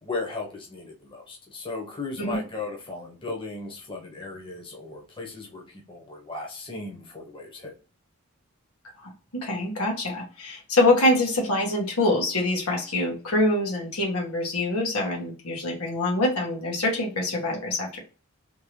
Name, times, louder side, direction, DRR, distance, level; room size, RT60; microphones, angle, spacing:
voice 1, 0.0-7.7, left 3 dB, 25° left, -1 dB, 1.0 m, -36 dB
voice 2, 9.0-18.0, left 2 dB, 90° left, -1 dB, 1.7 m, -25 dB
3.5 x 3.0 x 3.2 m, 0.36 s
head